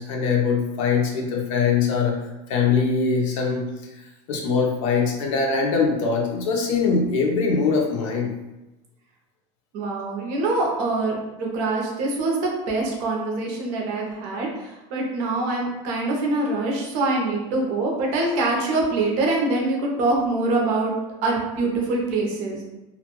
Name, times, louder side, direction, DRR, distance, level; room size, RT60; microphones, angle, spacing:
voice 1, 0.0-2.2 2.5-3.7 4.3-8.3, left 5 dB, 85° left, 0 dB, 0.7 m, -22 dB
voice 2, 9.7-20.9 21.2-22.6, right 2 dB, 45° right, -1 dB, 0.6 m, -24 dB
2.4 x 2.2 x 2.9 m, 1.0 s
cardioid pair, 175°, 16 cm